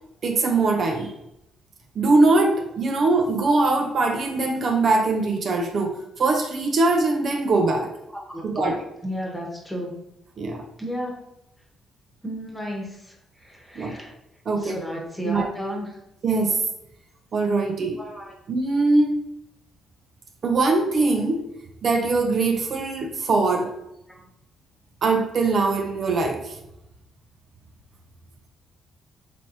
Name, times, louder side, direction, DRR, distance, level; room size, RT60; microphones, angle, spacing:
voice 1, 0.2-1.1 2.0-7.9 8.4-8.7 10.4-10.6 13.8-14.0 14.5-14.8 15.2-15.5 16.2-16.6 17.3-18.0 18.5-19.2 20.4-21.4 21.8-23.7 25.0-26.6, right 3 dB, 50° right, 3 dB, 0.6 m, -22 dB
voice 2, 8.1-8.7 9.0-10.0 10.8-11.2 12.2-14.1 14.6-16.0 18.0-18.3 24.1-24.3, equal, 10° left, 0 dB, 1.2 m, -33 dB
4.0 x 3.2 x 3.0 m, 0.85 s
cardioid pair, 90°, 0 cm